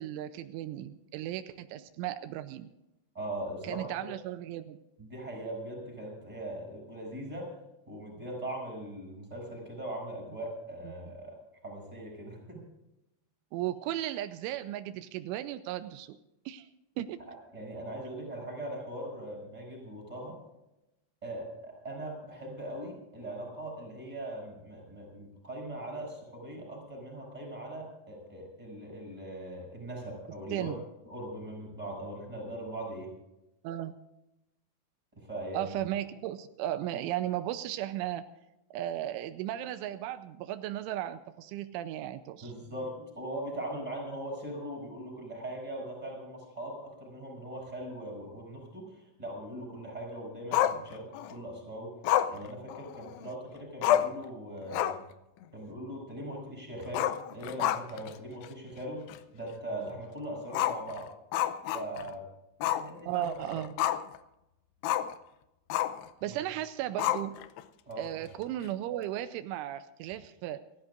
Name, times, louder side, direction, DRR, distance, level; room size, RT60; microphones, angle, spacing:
voice 1, 0.0-2.7 3.7-4.8 10.9-11.0 13.5-16.2 16.5-16.7 17.0-17.2 30.5-30.8 33.6-33.9 35.5-38.3 38.7-42.5 63.1-63.7 66.2-67.3 68.0-70.6, right 13 dB, 85° right, 10 dB, 3.1 m, -35 dB
voice 2, 3.1-3.9 5.0-7.5 7.9-11.4 11.6-12.6 17.3-20.4 21.2-30.7 31.1-33.1 35.1-35.7 42.4-51.9 52.3-55.0 55.5-61.1 61.7-62.2 62.6-63.6 66.3-66.4 67.9-68.0, right 1 dB, 10° right, 1 dB, 7.2 m, -40 dB
Growling, 50.5-51.3 52.0-53.3 53.6-53.7 53.8-54.2 54.6-55.1 55.4-55.5 56.9-58.1 58.4-58.5 59.1-59.2 60.5-62.1 62.6-62.9 63.2-64.2 64.8-65.1 65.7-66.1 67.0-67.6, left 12 dB, 90° left, 2.3 m, -29 dB
29.0 x 13.5 x 2.5 m, 0.92 s
omnidirectional pair, 5.5 m